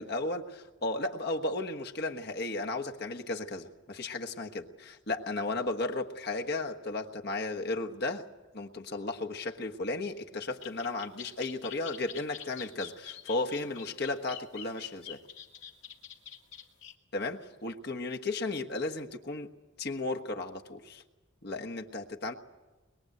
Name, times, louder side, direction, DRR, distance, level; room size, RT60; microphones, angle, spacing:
voice 1, 0.0-8.3 8.5-15.2 17.1-19.5 19.8-21.0 21.4-22.3, left 2 dB, 50° left, 3 dB, 1.4 m, -34 dB
sound 1, 10.6-16.9, left 9 dB, 65° left, 2.2 m, -46 dB
23.5 x 22.0 x 7.9 m, 1.2 s
head